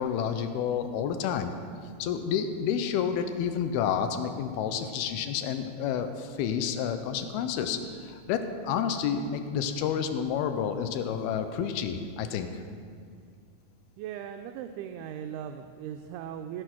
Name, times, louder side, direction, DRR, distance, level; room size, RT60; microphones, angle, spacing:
voice 1, 0.0-1.5 2.0-12.5, left 8 dB, 90° left, 8 dB, 2.6 m, -30 dB
voice 2, 14.0-16.6, right 9 dB, 85° right, 5 dB, 2.5 m, -38 dB
16.5 x 6.8 x 6.0 m, 2.1 s
omnidirectional pair, 4.5 m